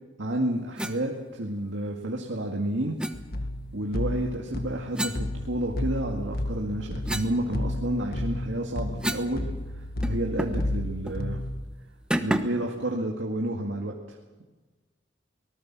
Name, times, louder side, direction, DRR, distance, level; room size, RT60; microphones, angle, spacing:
voice 1, 0.2-3.0 3.7-9.4 10.0-11.4 12.2-13.9, right 1 dB, 85° right, 0 dB, 2.1 m, -30 dB
sound 1, 0.8-1.0 3.0-3.2 4.9-6.0 6.5-9.4 9.6-9.7 10.0-10.7 11.0-11.2 12.1-12.7, equal, 5° right, 1.1 m, -32 dB
sound 2, 3.1-11.6, left 1 dB, 55° left, 1.7 m, -32 dB
23.5 x 19.5 x 6.2 m, 1.3 s
head